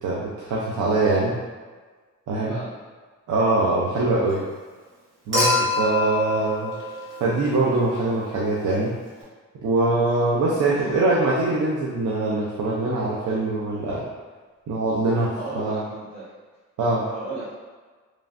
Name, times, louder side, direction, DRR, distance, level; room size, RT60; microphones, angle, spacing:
voice 1, 0.0-1.4 2.3-2.5 3.3-4.4 5.3-6.7 7.2-8.9 9.6-14.0 14.7-15.8 16.8-17.0, right 2 dB, 75° right, -5 dB, 0.6 m, -23 dB
voice 2, 2.4-2.8 4.0-4.5 10.6-11.3 15.3-16.3 16.9-17.5, right 2 dB, 55° right, -10 dB, 1.5 m, -36 dB
Human group actions / Chink clink / Liquid, 5.3-7.7 9.2-9.3, left 2 dB, 40° right, 1.4 m, -25 dB
3.1 x 2.5 x 2.4 m, 1.4 s
cardioid pair, 115°, 31 cm